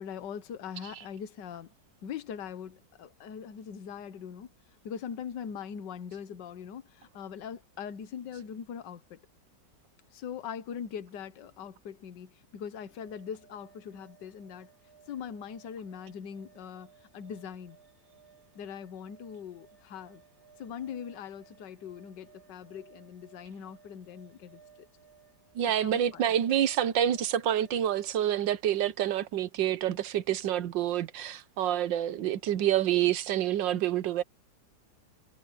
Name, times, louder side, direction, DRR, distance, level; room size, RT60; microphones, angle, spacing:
voice 1, 0.0-1.7 2.0-4.5 4.8-9.2 10.1-14.7 15.1-17.8 18.5-20.2 20.6-24.9 25.8-26.2, left 7 dB, 70° left, 1.7 m, -41 dB
sound 1, 12.9-28.2, right 7 dB, 90° left, 4.8 m, -60 dB
voice 2, 25.5-34.2, right 11 dB, 80° right, 1.6 m, -27 dB
omnidirectional pair, 2.0 m